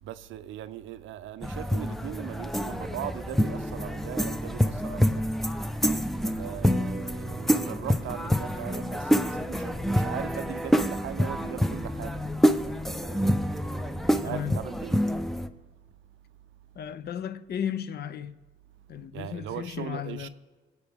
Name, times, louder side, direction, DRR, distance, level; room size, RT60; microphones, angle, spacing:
voice 1, 0.0-5.2 6.2-12.2 12.9-15.0 19.1-20.3, right 11 dB, 75° right, 0.5 m, -39 dB
sound 1, 1.4-15.5, equal, ahead, 0.5 m, -27 dB
voice 2, 14.2-14.6 16.8-18.4 18.9-20.3, left 9 dB, 55° left, 0.5 m, -34 dB
21.5 x 8.0 x 3.5 m
cardioid pair, 90°, 20 cm